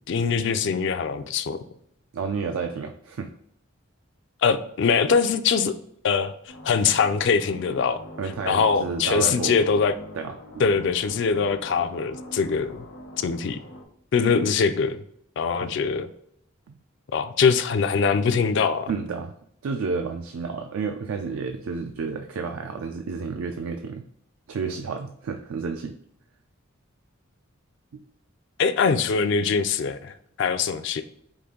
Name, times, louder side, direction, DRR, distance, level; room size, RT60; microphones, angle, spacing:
voice 1, 0.1-1.6 4.4-5.7 6.0-6.3 6.6-8.0 8.5-9.9 10.6-12.8 13.2-13.6 14.1-15.0 15.4-16.1 17.1-18.9 28.6-30.1 30.4-31.0, left 5 dB, 55° left, 9 dB, 0.3 m, -22 dB
voice 2, 2.1-3.3 8.2-9.6 10.1-10.6 15.6-15.8 16.7-16.8 18.9-19.3 19.6-24.0 24.5-26.0 27.9-28.0, right 5 dB, 80° right, 5 dB, 0.4 m, -31 dB
sound 1, 6.5-13.8, left 1 dB, 80° left, 0.9 m, -43 dB
5.0 x 2.5 x 3.7 m, 0.70 s
head